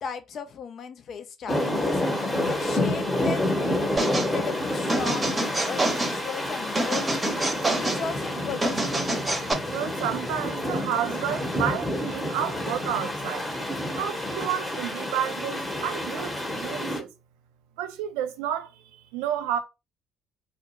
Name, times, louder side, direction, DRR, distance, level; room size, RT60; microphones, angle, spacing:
voice 1, 0.0-2.0 2.5-7.0 7.7-9.0, left 6 dB, 50° left, 0.4 m, -36 dB
sound 1, 1.5-17.0, left 1 dB, 10° left, 0.8 m, -29 dB
sound 2, 4.0-4.3 4.9-6.2 6.7-8.0 8.6-9.5, right 2 dB, 25° right, 0.7 m, -26 dB
voice 2, 9.7-13.5 13.9-17.1 17.8-19.6, right 10 dB, 70° right, 0.3 m, -31 dB
2.2 x 2.1 x 2.9 m
figure-of-eight pair, 50°, 0 cm